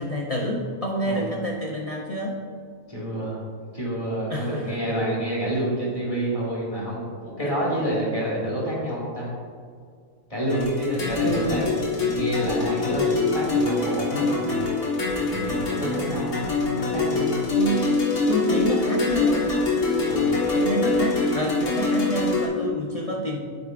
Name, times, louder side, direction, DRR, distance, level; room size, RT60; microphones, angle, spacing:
voice 1, 0.0-2.4 4.3-4.8 7.4-7.5 11.2-11.7 17.5-19.5 20.5-23.4, equal, 60° left, -1 dB, 0.3 m, -28 dB
voice 2, 2.9-3.4 3.7-9.3 10.3-14.6 15.2-17.4 20.0-20.4, right 1 dB, 25° left, -7 dB, 2.1 m, -28 dB
sound 1, 10.5-22.5, left 3 dB, 80° left, 2.1 m, -24 dB
8.8 x 8.1 x 2.5 m, 2.1 s
omnidirectional pair, 1.6 m